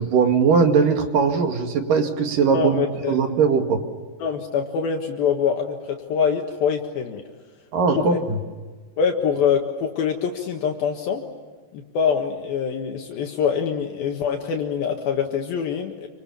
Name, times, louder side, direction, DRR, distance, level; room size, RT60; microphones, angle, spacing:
voice 1, 0.0-3.8 7.7-8.4, right 5 dB, 60° right, 5 dB, 3.4 m, -20 dB
voice 2, 2.5-3.1 4.2-7.2 7.9-8.2 9.0-11.2 11.7-16.1, left 7 dB, 70° left, 2 dB, 3.3 m, -24 dB
28.5 x 26.0 x 7.0 m, 1.4 s
omnidirectional pair, 4.7 m